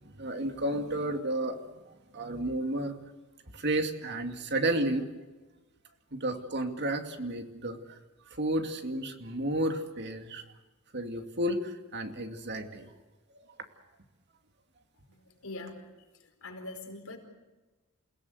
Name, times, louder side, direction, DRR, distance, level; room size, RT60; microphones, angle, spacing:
voice 1, 0.0-1.6 2.1-2.9 3.5-5.1 6.1-8.0 8.3-10.4 10.9-12.9, right 1 dB, 55° right, 6 dB, 2.5 m, -32 dB
voice 2, 15.1-15.9 16.2-17.2, left 2 dB, 70° left, 3 dB, 4.9 m, -43 dB
29.0 x 17.5 x 8.1 m, 1.2 s
head